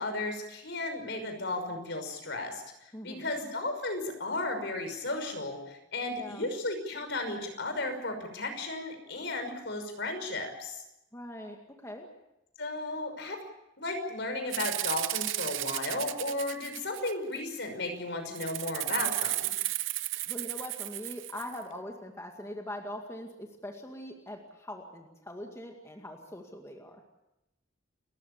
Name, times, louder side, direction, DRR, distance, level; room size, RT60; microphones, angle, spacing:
voice 1, 0.0-2.6 3.0-10.8 12.6-13.4 13.8-19.5, left 2 dB, 65° left, 6 dB, 5.8 m, -34 dB
voice 2, 2.9-3.4 6.1-6.5 11.1-12.1 20.3-27.0, left 1 dB, 15° left, 2 dB, 2.2 m, -42 dB
Rattle (instrument), 14.5-17.4 18.4-21.6, right 15 dB, 80° right, 0.9 m, -33 dB
30.0 x 15.0 x 8.5 m, 0.90 s
head